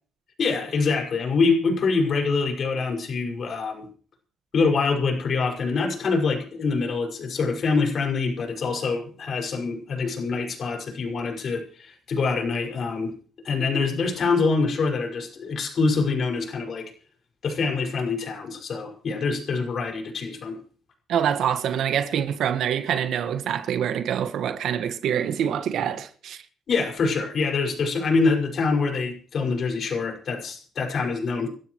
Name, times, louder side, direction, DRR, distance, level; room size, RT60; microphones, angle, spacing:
voice 1, 0.4-3.9 4.5-13.1 13.4-16.9 17.4-20.6 26.7-31.5, left 4 dB, 55° left, 6.0 m, -25 dB
voice 2, 21.1-26.4, right 9 dB, 75° right, 1.6 m, -25 dB
29.5 x 12.5 x 3.2 m
cardioid pair, 90°, 0 cm